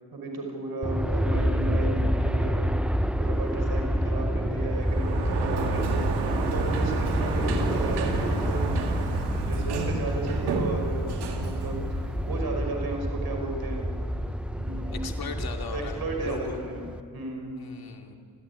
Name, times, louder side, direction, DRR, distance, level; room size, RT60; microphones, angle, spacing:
voice 1, 0.1-2.7 3.2-8.7 9.5-13.9 14.5-15.1 15.7-17.6, right 2 dB, 65° right, 3 dB, 5.5 m, -34 dB
Aircraft, 0.8-17.0, equal, 5° right, 1.1 m, -28 dB
Sliding door, 4.7-12.5, right 4 dB, 90° right, 2.0 m, -31 dB
voice 2, 14.9-16.6 17.5-18.2, left 5 dB, 65° left, 4 dB, 2.8 m, -38 dB
26.5 x 15.0 x 9.6 m, 2.3 s
supercardioid pair, 45°, 39 cm